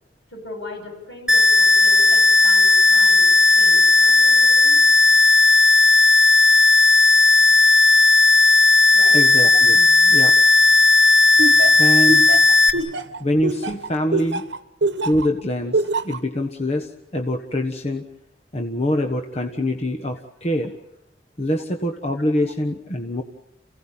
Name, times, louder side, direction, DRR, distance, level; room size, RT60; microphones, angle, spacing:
voice 1, 0.3-4.8 8.9-9.2 18.9-19.0, left 1 dB, 80° left, 4 dB, 7.4 m, -38 dB
sound 1, 1.3-12.7, left 3 dB, 5° right, 1.6 m, -14 dB
voice 2, 9.1-10.4 11.8-12.3 13.2-14.4 15.0-18.0 18.5-20.7 21.4-23.2, left 1 dB, 35° left, 5 dB, 1.4 m, -24 dB
Laughter, 11.4-15.3 15.7-16.2, right 2 dB, 80° right, 1.1 m, -23 dB
28.5 x 17.0 x 9.0 m, 0.86 s
head